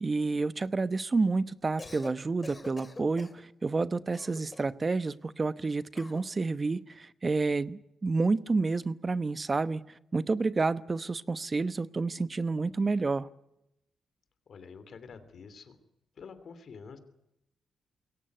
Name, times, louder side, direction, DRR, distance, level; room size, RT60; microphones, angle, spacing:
voice 1, 0.0-13.3, right 3 dB, 35° right, 16 dB, 1.0 m, -29 dB
Cough, 1.6-2.2 2.4-3.4 4.1-4.8 5.9-6.3, left 2 dB, 30° left, 2.3 m, -45 dB
voice 2, 14.5-15.8 16.2-17.0, left 5 dB, 65° left, 12 dB, 3.0 m, -47 dB
22.0 x 18.0 x 9.3 m, 0.85 s
supercardioid pair, 60°, 0 cm